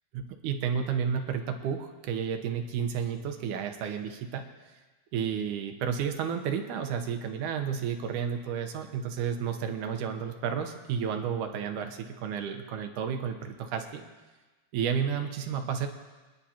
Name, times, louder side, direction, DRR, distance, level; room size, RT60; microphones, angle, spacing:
voice 1, 0.1-4.4 5.1-14.0 14.7-15.9, right 7 dB, 85° right, 6 dB, 2.5 m, -31 dB
23.5 x 10.5 x 2.9 m, 1.2 s
omnidirectional pair, 3.5 m